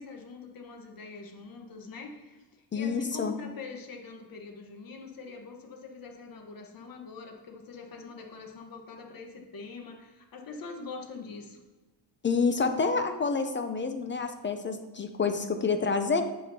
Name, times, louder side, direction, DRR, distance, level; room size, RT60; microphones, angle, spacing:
voice 1, 0.0-11.6, left 4 dB, 50° left, 3 dB, 1.2 m, -44 dB
voice 2, 2.7-3.3 12.2-16.2, left 4 dB, 25° left, 7 dB, 0.5 m, -28 dB
8.3 x 7.7 x 2.7 m, 1.2 s
cardioid pair, 160°, 44 cm